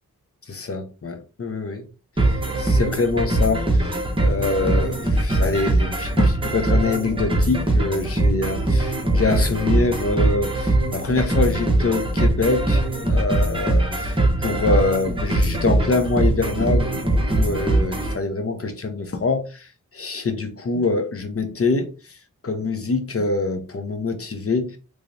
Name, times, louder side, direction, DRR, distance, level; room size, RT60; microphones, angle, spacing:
voice 1, 0.5-1.9 2.6-13.9 14.4-21.9 22.4-24.8, left 3 dB, 40° left, 0.8 m, -25 dB
sound 1, 2.2-18.1, right 1 dB, 15° right, 1.1 m, -21 dB
3.2 x 2.9 x 2.6 m
cardioid pair, 55°, 34 cm